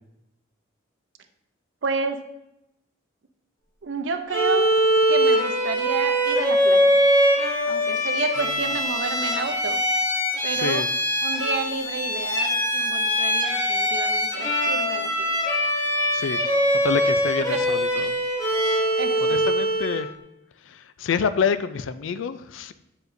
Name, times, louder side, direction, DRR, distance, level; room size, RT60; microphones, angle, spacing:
voice 1, 1.8-2.2 3.8-4.7 5.1-7.0 7.7-9.8 10.4-10.9 11.2-15.4 18.9-19.4, right 4 dB, 65° right, 7 dB, 0.6 m, -30 dB
Bowed string instrument, 4.3-20.1, equal, 15° left, 0.9 m, -22 dB
voice 2, 10.5-10.9 16.1-16.4 16.7-18.1 19.2-20.1 20.7-22.7, left 6 dB, 80° left, 13 dB, 0.4 m, -27 dB
8.0 x 4.9 x 2.6 m, 0.87 s
head